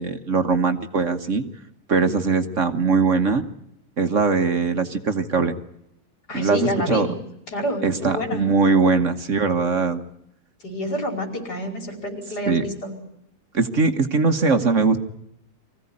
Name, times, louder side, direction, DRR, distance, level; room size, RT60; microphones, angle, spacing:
voice 1, 0.0-1.4 1.9-3.4 4.0-5.6 6.3-7.1 7.8-10.0 12.5-12.6 13.5-15.0, right 4 dB, 50° right, 7 dB, 1.6 m, -21 dB
voice 2, 6.3-7.1 7.5-8.5 10.6-12.9, equal, 75° left, 3 dB, 5.8 m, -28 dB
24.5 x 16.0 x 9.8 m, 0.80 s
omnidirectional pair, 1.8 m